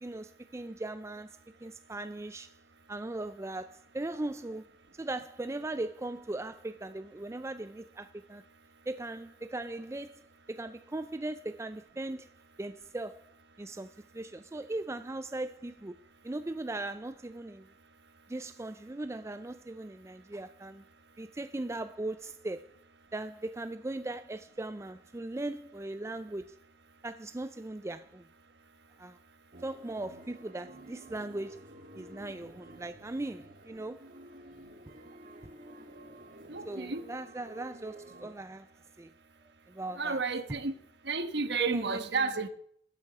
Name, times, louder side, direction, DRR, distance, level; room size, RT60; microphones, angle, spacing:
voice 1, 0.0-2.5 2.9-4.7 4.9-8.4 8.9-10.2 10.5-12.3 12.6-13.2 13.6-16.0 16.2-17.7 18.3-20.8 21.2-22.7 23.1-26.6 27.0-28.3 29.0-29.2 29.6-31.7 31.9-34.1 36.6-38.7 39.0-39.1 39.7-40.2 41.6-42.0, right 2 dB, 15° right, 0.4 m, -39 dB
sound 1, 29.5-38.3, right 1 dB, 50° right, 1.7 m, -51 dB
voice 2, 36.5-37.0 40.0-40.7 41.0-42.5, right 4 dB, 65° right, 1.3 m, -31 dB
15.0 x 8.3 x 6.7 m
head